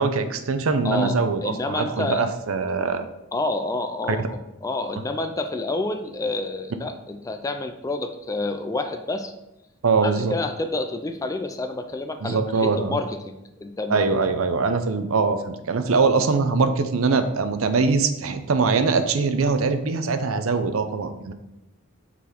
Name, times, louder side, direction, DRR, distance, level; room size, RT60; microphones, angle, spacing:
voice 1, 0.0-3.0 4.1-4.3 9.8-10.4 12.2-13.0 13.9-21.3, right 4 dB, 70° right, 9 dB, 0.6 m, -22 dB
voice 2, 0.8-2.2 3.3-4.4 4.6-9.3 10.0-12.4 12.8-13.3 13.6-14.0 16.2-16.3, left 2 dB, 15° left, 7 dB, 0.4 m, -28 dB
5.9 x 4.0 x 4.4 m, 0.92 s
head